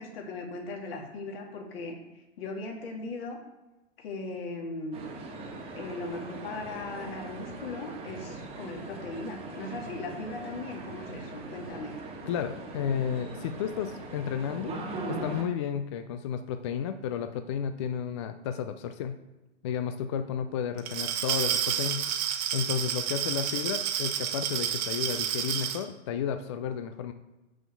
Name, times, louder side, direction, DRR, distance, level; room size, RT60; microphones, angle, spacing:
voice 1, 0.0-2.0 2.4-3.4 4.0-5.1 5.7-12.0 20.7-20.8, left 2 dB, 50° left, 0 dB, 2.7 m, -38 dB
sound 1, 4.9-15.4, right 2 dB, 15° right, 1.5 m, -40 dB
voice 2, 12.3-14.7 15.1-19.2 19.6-27.1, left 8 dB, 25° left, 9 dB, 0.4 m, -32 dB
Glass, 20.8-25.8, right 10 dB, 35° right, 1.1 m, -30 dB
7.1 x 6.2 x 6.9 m, 1.1 s
hypercardioid pair, 125°, 37 cm